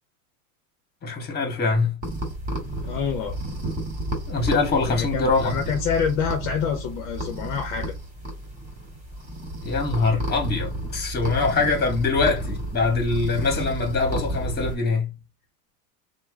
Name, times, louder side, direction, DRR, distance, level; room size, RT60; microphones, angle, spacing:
voice 1, 1.0-2.0 4.3-5.6 9.6-15.2, left 4 dB, 20° left, 1.6 m, -23 dB
sound 1, 2.0-14.8, right 1 dB, 20° right, 2.2 m, -31 dB
voice 2, 2.8-3.4 4.9-7.9, left 7 dB, 50° left, 0.8 m, -27 dB
3.1 x 2.2 x 3.5 m
hypercardioid pair, 110°, 45 cm